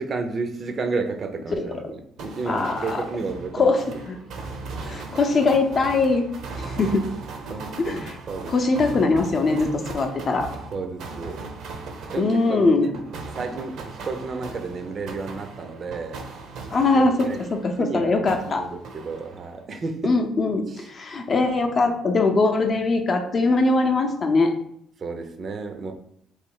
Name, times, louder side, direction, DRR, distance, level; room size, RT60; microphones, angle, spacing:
voice 1, 0.0-3.8 4.7-5.0 7.5-8.7 10.7-11.5 12.1-16.2 16.9-17.4 17.7-20.2 20.7-20.9 25.0-25.9, right 4 dB, 40° right, 6 dB, 0.5 m, -32 dB
sound 1, 2.2-17.9 18.3-19.6, right 3 dB, 70° right, 0.7 m, -38 dB
voice 2, 2.5-3.0 3.5-4.2 4.9-6.3 6.6-7.1 7.8-8.1 8.5-10.5 12.2-12.9 16.7-18.7 20.0-24.5, left 3 dB, 40° left, 4 dB, 0.6 m, -21 dB
3.1 x 3.0 x 4.7 m, 0.69 s
cardioid pair, 120°, 0 cm